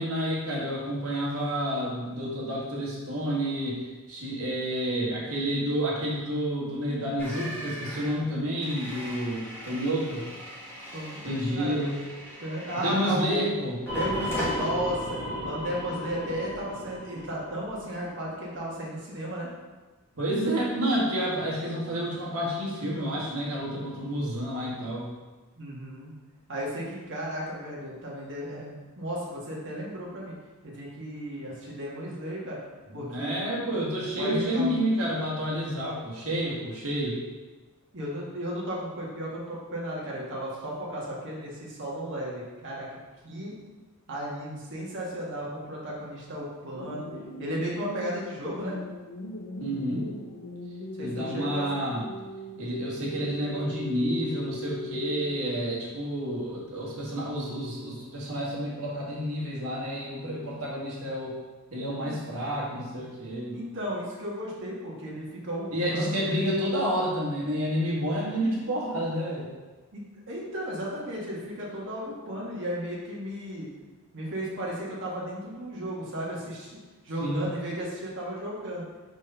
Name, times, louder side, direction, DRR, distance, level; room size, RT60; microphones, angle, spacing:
voice 1, 0.0-3.8 4.1-10.2 11.2-12.0 12.7-13.8 20.1-25.1 32.9-37.2 49.6-50.1 51.0-52.1 52.6-61.3 61.7-63.5 65.7-69.5 77.2-77.5, equal, 75° right, -4 dB, 1.8 m, -29 dB
sound 1, 7.2-13.4 13.9-14.7, equal, 10° left, 1.3 m, -40 dB
voice 2, 10.9-11.8 12.4-13.4 13.9-15.2 15.4-19.5 25.6-26.1 26.5-30.3 30.6-32.6 32.9-33.6 34.2-35.1 37.9-42.9 43.2-43.5 44.1-47.1 47.4-48.8 51.0-51.6 62.0-62.1 63.5-66.3 69.9-73.7 74.1-76.8 77.0-78.8, equal, 55° right, -5 dB, 1.6 m, -34 dB
sound 2, 13.9-18.3, left 1 dB, 10° right, 1.9 m, -34 dB
sound 3, 46.7-55.7, left 1 dB, 65° left, 0.6 m, -39 dB
4.7 x 4.2 x 5.5 m, 1.3 s
head